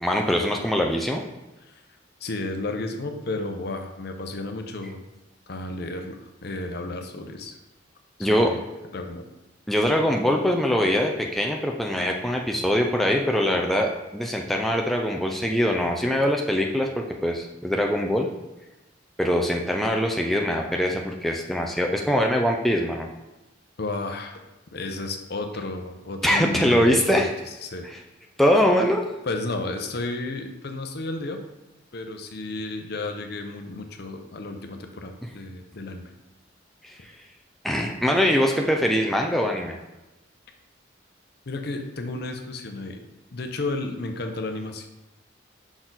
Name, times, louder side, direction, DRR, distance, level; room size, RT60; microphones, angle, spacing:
voice 1, 0.0-1.2 8.2-8.5 9.7-16.9 17.2-18.3 19.2-23.1 26.2-27.3 28.4-29.0 36.8-37.0 37.6-39.8, equal, ahead, 0 dB, 0.4 m, -22 dB
voice 2, 2.2-5.0 5.5-7.6 8.2-8.6 8.9-9.3 23.8-24.4 24.7-27.9 29.2-31.4 31.9-36.1 41.5-43.0 43.3-44.9, left 2 dB, 55° left, 5 dB, 0.7 m, -32 dB
5.9 x 4.1 x 3.9 m, 1.0 s
head